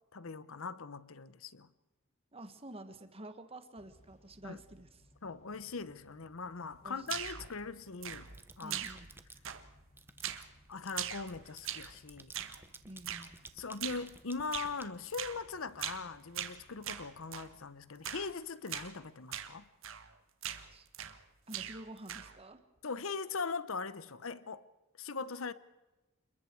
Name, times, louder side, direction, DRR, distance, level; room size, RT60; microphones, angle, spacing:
voice 1, 0.1-1.7 4.4-4.6 5.2-8.3 8.6-8.8 10.7-12.3 13.6-19.6 22.8-24.6 25.0-25.5, left 4 dB, 65° left, 0.9 m, -40 dB
voice 2, 2.3-5.1 6.8-7.1 8.6-9.1 12.8-13.3 20.7-21.1 21.5-22.6, right 1 dB, 25° right, 1.6 m, -49 dB
Motor vehicle (road) / Engine starting / Accelerating revving vroom, 3.8-18.7, left 1 dB, 35° left, 3.1 m, -66 dB
sound 1, 7.1-7.6 8.0-9.6 10.0-15.7, right 3 dB, 10° right, 1.1 m, -56 dB
sound 2, 7.1-7.5 8.0-8.4 8.7-9.2 9.4-9.8 10.2-10.5 10.9-12.0 12.3-12.6 13.0-13.3 13.8-14.1 14.5-14.7 15.1-15.4 15.8-16.1 16.3-17.5 18.0-18.3 18.7-18.9 19.3-19.5 19.8-20.1 20.4-21.2 21.5-22.4, right 10 dB, 65° right, 1.5 m, -41 dB
28.0 x 22.0 x 4.7 m
head